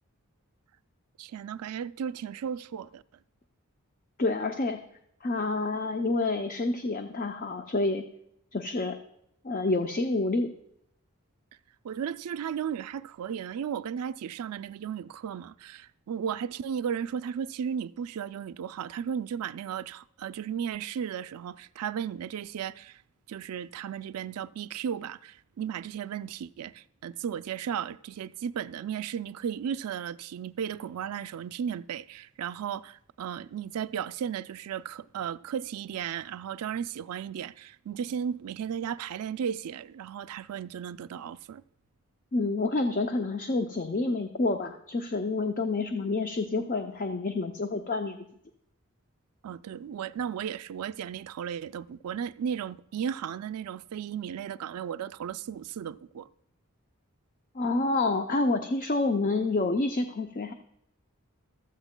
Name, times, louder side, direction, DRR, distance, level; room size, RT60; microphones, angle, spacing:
voice 1, 1.2-3.0 11.8-23.0 23.3-41.6 49.4-56.3, right 8 dB, 90° right, 0.4 m, -35 dB
voice 2, 4.2-4.8 5.2-8.0 8.5-9.0 9.4-10.5 42.3-48.2 57.5-60.5, left 3 dB, 40° left, 0.5 m, -28 dB
15.0 x 13.0 x 2.2 m
head